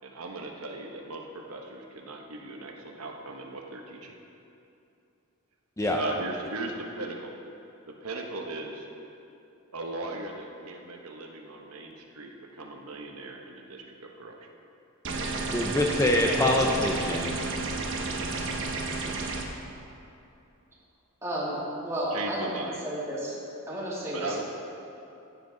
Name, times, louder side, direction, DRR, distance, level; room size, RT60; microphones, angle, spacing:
voice 1, 0.0-4.2 5.9-7.3 7.9-8.9 9.7-14.5 22.1-22.8 24.1-24.4, right 2 dB, 85° right, 1 dB, 1.1 m, -38 dB
sound 1, 15.0-19.4, right 3 dB, 60° right, 1.1 m, -31 dB
voice 2, 15.5-17.4, left 1 dB, 15° left, 0 dB, 0.6 m, -25 dB
voice 3, 16.3-16.6 21.2-21.6 21.8-23.4 23.7-24.4, right 1 dB, 15° right, -7 dB, 2.6 m, -32 dB
15.0 x 7.9 x 3.9 m, 2.7 s
head